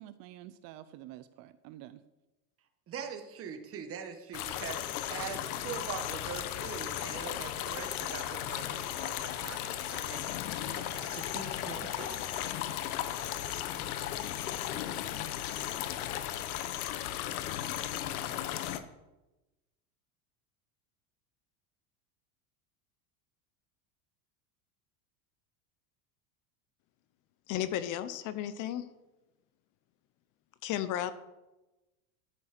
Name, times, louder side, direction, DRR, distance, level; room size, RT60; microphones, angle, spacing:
voice 1, 0.0-2.0, right 13 dB, 50° right, 13 dB, 0.6 m, -49 dB
voice 2, 2.9-12.2, right 7 dB, 30° right, 7 dB, 1.5 m, -43 dB
sound 1, 4.3-18.8, left 12 dB, 80° left, 1.1 m, -36 dB
voice 3, 27.5-28.9 30.6-31.1, left 11 dB, 45° left, 13 dB, 0.8 m, -33 dB
13.0 x 6.3 x 6.0 m, 1.0 s
supercardioid pair, 135°, 44 cm